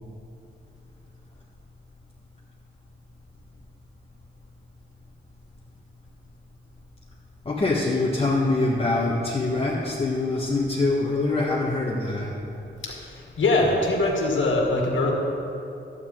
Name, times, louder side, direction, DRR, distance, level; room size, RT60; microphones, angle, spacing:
voice 1, 7.4-12.3, left 2 dB, 30° left, -6 dB, 1.5 m, -24 dB
voice 2, 12.8-15.1, left 2 dB, 75° left, -2 dB, 2.1 m, -23 dB
12.0 x 9.5 x 3.8 m, 2.8 s
cardioid pair, 75°, 20 cm